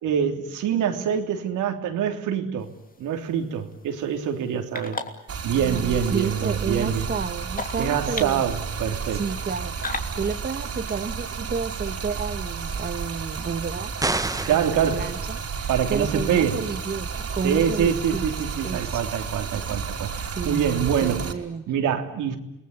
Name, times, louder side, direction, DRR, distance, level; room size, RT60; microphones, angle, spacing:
voice 1, 0.0-2.7 3.0-5.0 5.4-7.1 7.8-9.2 14.4-15.0 15.7-16.6 17.4-21.2 21.7-22.4, right 8 dB, 85° right, 4 dB, 3.3 m, -25 dB
sound 1, 2.6-10.0, left 3 dB, 30° left, 3.0 m, -39 dB
Stream, 5.3-21.3, right 5 dB, 50° right, 4.0 m, -32 dB
voice 2, 5.5-8.5 9.1-13.9 14.5-18.2 18.6-19.0 20.3-21.6, right 5 dB, 30° right, 8 dB, 1.4 m, -31 dB
sound 2, 14.0-14.7, right 2 dB, 10° right, 1.0 m, -26 dB
28.5 x 20.0 x 9.8 m, 0.92 s
cardioid pair, 90°, 30 cm